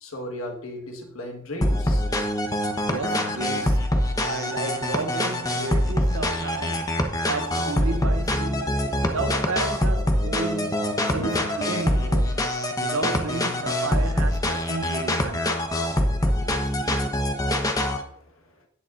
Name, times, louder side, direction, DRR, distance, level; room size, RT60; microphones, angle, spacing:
voice 1, 0.0-2.0 7.4-7.8 8.8-9.1 11.2-11.4 16.4-18.7, left 1 dB, 85° left, 1.6 m, -38 dB
sound 1, 1.6-18.0, left 1 dB, 15° left, 1.0 m, -24 dB
voice 2, 2.9-12.5 12.8-15.5, right 3 dB, 85° right, 0.8 m, -33 dB
18.0 x 7.2 x 2.6 m
head